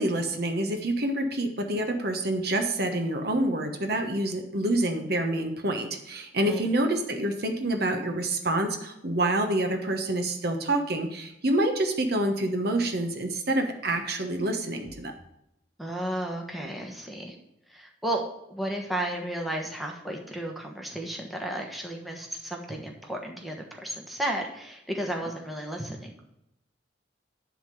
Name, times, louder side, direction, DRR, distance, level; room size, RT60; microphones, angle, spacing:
voice 1, 0.0-15.1, right 1 dB, 60° right, 5 dB, 1.1 m, -27 dB
voice 2, 15.8-17.4 17.7-18.2 18.5-26.2, right 1 dB, ahead, 0 dB, 1.2 m, -33 dB
11.0 x 3.7 x 7.5 m, 0.83 s
head